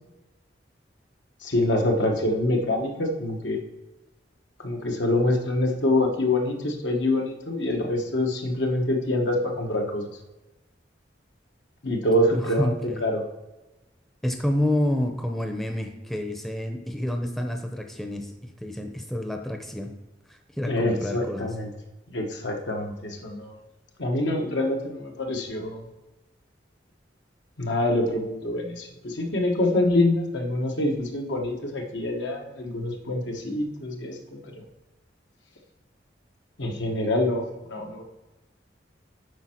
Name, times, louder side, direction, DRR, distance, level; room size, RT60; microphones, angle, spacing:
voice 1, 1.4-3.6 4.6-10.1 11.8-12.7 13.0-13.2 20.7-21.7 22.1-23.6 24.0-25.8 27.6-34.6 36.6-38.0, left 1 dB, 75° left, 2 dB, 1.3 m, -25 dB
voice 2, 12.3-13.0 14.2-19.9 20.6-21.5, left 1 dB, ahead, 4 dB, 0.7 m, -28 dB
8.1 x 5.3 x 4.4 m, 1.1 s
head